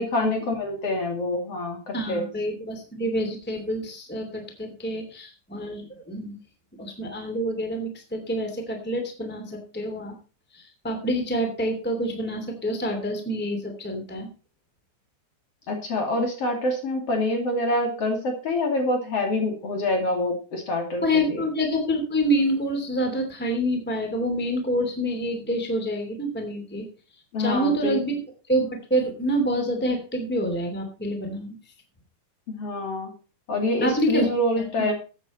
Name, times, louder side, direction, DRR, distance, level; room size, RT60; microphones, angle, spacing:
voice 1, 0.0-2.2 15.7-21.5 27.3-28.0 32.5-33.1 33.5-34.9, left 1 dB, 50° left, 3 dB, 3.5 m, -26 dB
voice 2, 1.9-6.3 6.8-10.1 10.5-14.3 21.0-26.9 27.4-28.2 28.5-31.5 33.8-34.3 34.6-34.7, equal, 5° left, 4 dB, 2.5 m, -27 dB
14.0 x 9.0 x 4.3 m, 0.34 s
omnidirectional pair, 3.7 m